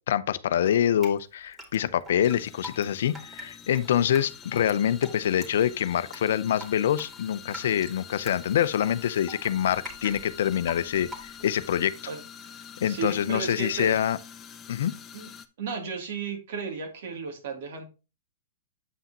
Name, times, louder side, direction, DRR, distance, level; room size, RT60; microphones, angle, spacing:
voice 1, 0.1-11.9 12.8-14.2 14.7-14.9, left 10 dB, 70° left, 0.6 m, -25 dB
Drip, 0.7-11.6, left 1 dB, 15° right, 2.5 m, -45 dB
sound 1, 2.2-15.5, left 8 dB, 20° left, 0.8 m, -46 dB
voice 2, 12.1-12.6 12.8-13.9 15.1-15.3 15.6-17.9, right 6 dB, 65° right, 2.9 m, -34 dB
8.4 x 5.7 x 2.9 m
hypercardioid pair, 130°, 0 cm